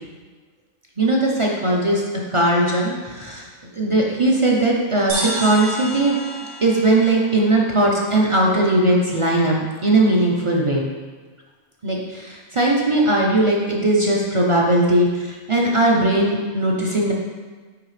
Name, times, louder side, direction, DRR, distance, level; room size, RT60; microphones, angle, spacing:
voice 1, 1.0-2.0 2.3-3.4 3.7-6.2 6.6-10.9 11.8-17.1, right 1 dB, 45° right, -2 dB, 0.4 m, -19 dB
sound 1, 5.1-8.6, right 1 dB, 85° right, 2.3 m, -31 dB
9.5 x 3.5 x 3.2 m, 1.4 s
omnidirectional pair, 1.5 m